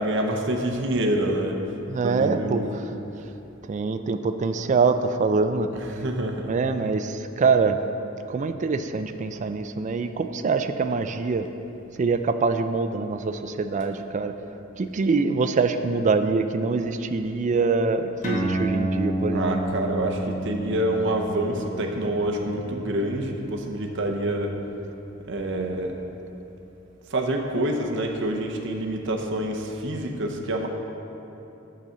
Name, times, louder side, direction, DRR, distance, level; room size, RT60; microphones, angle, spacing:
voice 1, 0.0-1.6 2.0-2.6 5.7-6.5 19.3-24.5 25.3-26.0 27.1-30.7, right 1 dB, 65° right, 3 dB, 0.7 m, -27 dB
voice 2, 1.9-2.7 3.7-5.7 6.4-7.8 8.3-11.5 12.0-14.3 14.8-19.6, right 4 dB, 35° right, 9 dB, 0.3 m, -24 dB
sound 1, 18.2-25.2, right 1 dB, 40° left, 1.1 m, -31 dB
8.9 x 4.1 x 6.9 m, 3.0 s
head